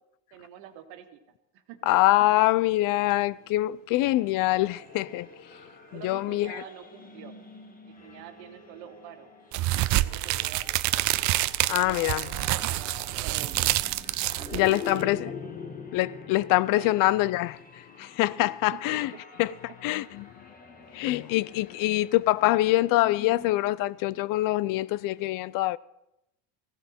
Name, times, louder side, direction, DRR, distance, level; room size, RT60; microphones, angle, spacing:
voice 1, 0.3-1.2 1.5-1.8 5.9-7.3 7.8-9.3 9.9-10.9 11.6-13.8 14.3-15.6 16.8-16.9 18.4-19.2, right 10 dB, 75° right, 1.7 m, -47 dB
voice 2, 1.9-5.3 5.9-6.6 11.7-12.3 14.5-15.3 15.9-19.1 19.4-19.5 19.8-20.3 20.9-25.8, left 17 dB, 55° left, 0.4 m, -24 dB
sound 1, 3.9-23.8, left 5 dB, 20° left, 1.9 m, -45 dB
sound 2, 9.5-15.0, right 17 dB, 45° right, 0.5 m, -27 dB
16.5 x 15.5 x 4.3 m
cardioid pair, 145°, 39 cm